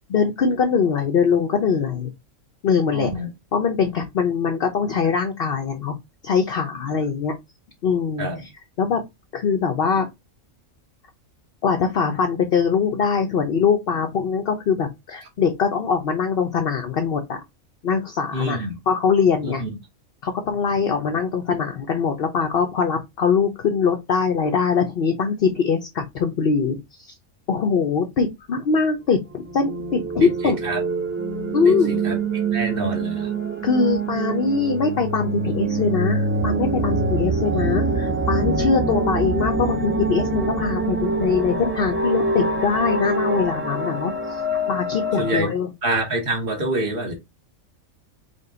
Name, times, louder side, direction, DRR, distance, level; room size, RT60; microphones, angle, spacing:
voice 1, 0.1-2.1 2.6-3.2 3.5-6.0 6.2-7.3 7.8-8.5 8.8-9.0 9.3-10.1 11.6-17.4 17.8-19.6 20.2-27.1 27.5-30.6 31.5-32.0 33.6-44.4 44.7-45.7, left 6 dB, 55° left, 0.8 m, -22 dB
voice 2, 2.9-3.3 8.2-8.4 18.3-18.8 19.4-19.7 30.2-30.8 31.6-32.2 32.5-33.3 37.5-37.8 45.2-45.5 45.8-47.2, right 2 dB, 45° right, 1.5 m, -26 dB
sound 1, 29.4-45.4, right 2 dB, 15° right, 0.5 m, -25 dB
5.2 x 2.3 x 3.8 m
omnidirectional pair, 1.4 m